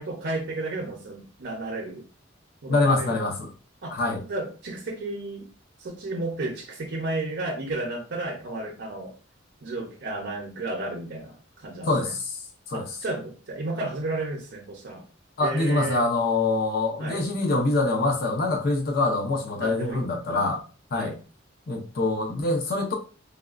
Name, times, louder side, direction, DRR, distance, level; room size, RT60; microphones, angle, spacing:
voice 1, 0.0-2.0 2.6-3.2 3.8-5.5 5.8-9.1 9.6-12.1 12.7-15.0 15.4-16.0 17.0-17.2 19.6-20.4 20.9-21.2, right 2 dB, 55° right, 0.6 m, -33 dB
voice 2, 2.7-3.5 3.9-4.2 11.9-12.4 12.7-12.9 15.4-20.6 20.9-21.1 21.7-22.9, left 2 dB, 50° left, 0.6 m, -25 dB
3.3 x 2.2 x 2.4 m
head